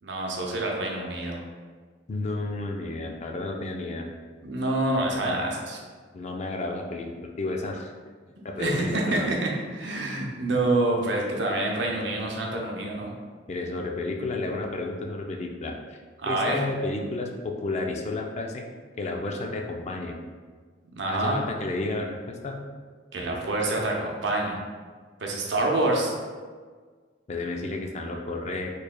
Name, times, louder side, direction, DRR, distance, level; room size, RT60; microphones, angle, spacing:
voice 1, 0.0-1.4 4.4-5.8 8.4-13.1 16.2-16.6 20.9-21.4 23.1-24.5 25.2-26.1, right 2 dB, 75° right, -1 dB, 0.7 m, -27 dB
voice 2, 2.1-4.1 5.2-5.4 6.1-7.1 7.4-7.9 8.4-9.3 13.5-16.0 16.3-18.6 19.0-20.2 21.1-22.6 27.3-28.7, left 2 dB, 40° left, 2 dB, 0.4 m, -31 dB
4.4 x 3.2 x 2.2 m, 1.5 s
head